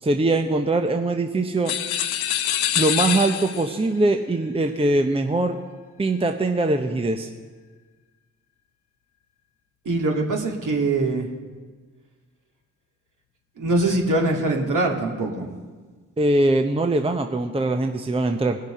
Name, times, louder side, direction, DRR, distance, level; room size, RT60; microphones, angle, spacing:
voice 1, 0.0-1.7 2.8-5.6 6.0-7.3 16.2-18.6, right 2 dB, 15° right, 5 dB, 0.8 m, -22 dB
sound 1, 1.6-3.8, left 11 dB, 80° left, 0.7 m, -25 dB
voice 2, 9.9-11.3 13.6-15.5, right 2 dB, 55° right, 0 dB, 2.3 m, -23 dB
19.0 x 6.6 x 5.0 m, 1.4 s
hypercardioid pair, 45°, 37 cm